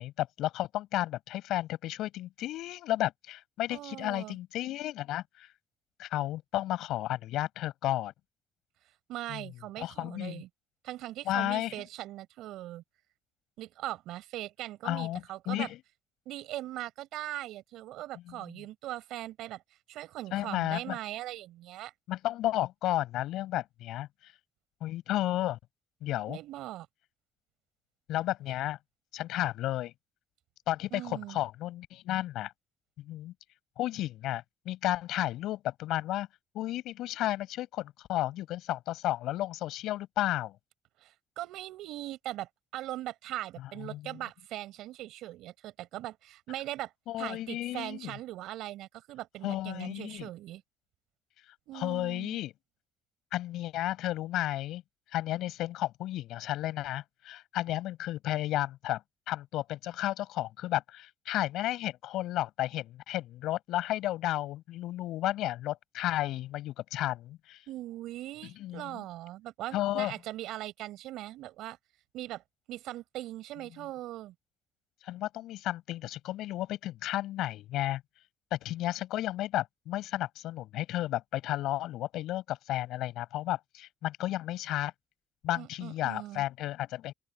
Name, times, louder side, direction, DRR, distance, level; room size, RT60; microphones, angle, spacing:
voice 1, 0.0-5.5 6.0-8.1 9.3-9.5 9.8-10.4 11.3-11.7 14.8-15.8 18.3-18.5 20.3-21.0 22.1-24.3 24.8-25.6 26.0-26.4 28.1-28.8 29.1-29.9 30.7-32.5 33.0-33.3 33.8-36.3 36.5-40.6 43.8-44.2 47.1-48.2 49.4-50.3 51.7-52.5 53.3-54.8 55.1-67.6 68.6-69.0 69.7-70.1 75.0-78.0 78.5-84.9 85.4-87.1, left 14 dB, 85° left, 7.9 m, -33 dB
voice 2, 3.7-4.4 9.1-10.5 10.8-12.8 13.6-15.7 16.3-19.6 19.9-21.9 26.3-26.9 30.9-31.4 41.0-46.9 47.2-50.6 51.7-52.4 67.7-71.8 72.1-72.4 72.7-74.3 85.5-86.4, right 15 dB, 90° right, 6.1 m, -40 dB
open air
cardioid pair, 150°, 0 cm